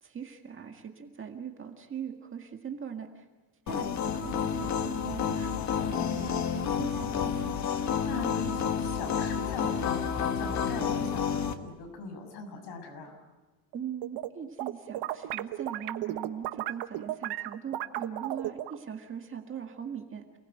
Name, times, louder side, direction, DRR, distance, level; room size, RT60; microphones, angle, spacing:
voice 1, 0.0-3.3 3.7-5.7 6.1-7.5 13.7-20.3, right 8 dB, 25° right, 4 dB, 1.9 m, -40 dB
sound 1, 3.7-11.5, left 7 dB, 35° left, 1.4 m, -30 dB
voice 2, 5.8-6.3 8.0-13.1, left 4 dB, 55° left, 4 dB, 6.9 m, -40 dB
sound 2, 13.7-14.3 14.6-18.8, right 14 dB, 55° right, 1.3 m, -34 dB
29.0 x 19.5 x 9.2 m, 1.2 s
cardioid pair, 165°, 47 cm